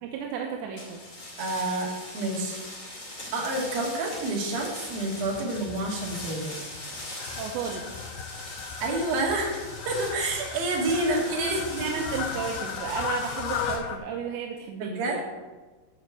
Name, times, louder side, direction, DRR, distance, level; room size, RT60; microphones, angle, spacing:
voice 1, 0.0-1.0 7.4-8.0 11.7-15.2, right 6 dB, 80° right, 1 dB, 3.0 m, -33 dB
sound 1, 0.8-13.8, left 1 dB, 30° left, 1.4 m, -41 dB
voice 2, 1.4-1.9 2.1-2.7 3.3-6.6 8.8-11.8 14.8-15.2, right 2 dB, 60° right, -2 dB, 3.8 m, -28 dB
Fowl, 4.5-14.0, left 7 dB, 75° left, 2.5 m, -37 dB
11.0 x 5.4 x 7.7 m, 1.3 s
omnidirectional pair, 5.2 m